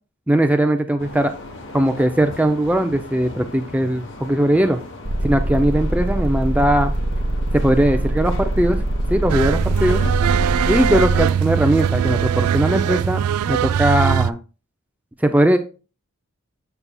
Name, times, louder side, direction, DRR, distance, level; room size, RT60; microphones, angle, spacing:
voice 1, 0.3-1.3 1.7-4.8 5.2-6.9 7.5-8.8 9.1-10.0 10.7-13.2 13.5-14.4 15.2-15.6, right 1 dB, 5° right, 6 dB, 0.3 m, -19 dB
sound 1, 1.0-10.2, left 2 dB, 55° left, 0.9 m, -37 dB
sound 2, 5.1-11.3, right 1 dB, 45° right, 0.8 m, -23 dB
sound 3, 9.3-14.3, right 8 dB, 85° right, 0.3 m, -20 dB
7.2 x 6.7 x 2.2 m, 0.34 s
head